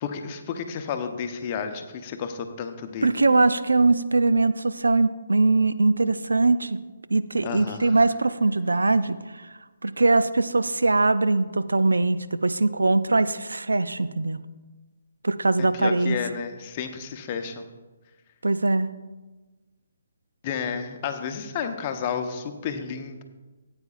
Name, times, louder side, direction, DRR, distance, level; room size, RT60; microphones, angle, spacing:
voice 1, 0.0-3.2 7.4-7.9 15.6-17.7 20.4-23.2, left 7 dB, 35° left, 6 dB, 0.8 m, -31 dB
voice 2, 3.0-6.8 7.1-9.5 9.8-14.4 15.2-16.2 18.4-18.9, right 3 dB, 85° right, 13 dB, 0.4 m, -22 dB
14.5 x 8.7 x 2.4 m, 1.2 s
figure-of-eight pair, 140°, 0 cm